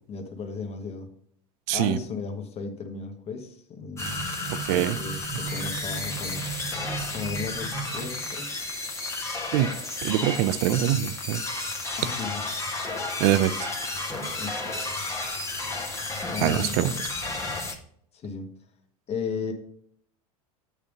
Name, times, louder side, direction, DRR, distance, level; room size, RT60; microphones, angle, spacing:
voice 1, 0.1-1.1 1.7-4.3 4.7-6.4 7.1-8.6 12.0-12.4 14.4-14.5 16.3-16.9 18.1-18.5 19.1-19.5, left 5 dB, 35° left, 5 dB, 1.6 m, -35 dB
voice 2, 1.7-2.0 4.6-5.0 9.5-9.7 10.0-11.4 13.2-13.7 16.4-17.1, right 13 dB, 60° right, 14 dB, 0.6 m, -24 dB
sound 1, 4.0-17.7, left 2 dB, 15° left, 1.5 m, -32 dB
8.2 x 3.6 x 6.4 m, 0.65 s
hypercardioid pair, 95°, 18 cm